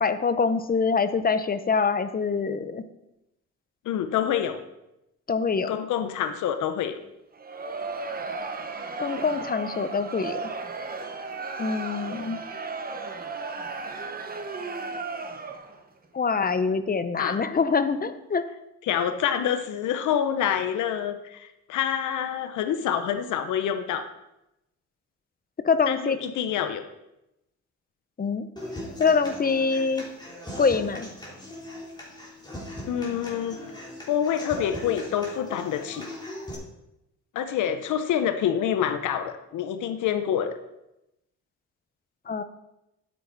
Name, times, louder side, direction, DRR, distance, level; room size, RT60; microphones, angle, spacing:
voice 1, 0.0-2.8 5.3-5.7 9.0-10.4 11.6-12.4 16.1-18.4 25.6-26.2 28.2-28.5 29.0-30.1 30.6-31.1 42.3-42.4, left 5 dB, 30° left, 11 dB, 0.8 m, -24 dB
voice 2, 3.8-4.6 5.7-6.9 17.2-17.4 18.8-24.1 25.9-26.8 32.9-33.6 34.1-36.1 37.3-40.5, left 9 dB, 80° left, 8 dB, 0.9 m, -27 dB
Crowd, 7.3-15.8, right 4 dB, 30° right, 1.1 m, -35 dB
Human voice / Acoustic guitar, 28.6-36.5, left 1 dB, 15° left, 3.5 m, -39 dB
9.4 x 8.9 x 4.1 m, 0.90 s
cardioid pair, 90°, 30 cm